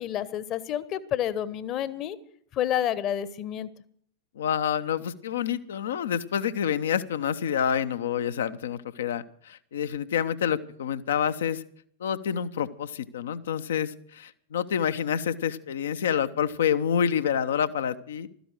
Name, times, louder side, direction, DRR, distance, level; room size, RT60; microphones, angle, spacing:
voice 1, 0.0-2.2 2.5-3.7, left 10 dB, 35° left, 17 dB, 1.2 m, -29 dB
voice 2, 4.4-11.6 12.0-18.3, left 8 dB, 60° left, 12 dB, 0.9 m, -28 dB
15.5 x 13.5 x 6.1 m, 0.62 s
figure-of-eight pair, 90°, 0 cm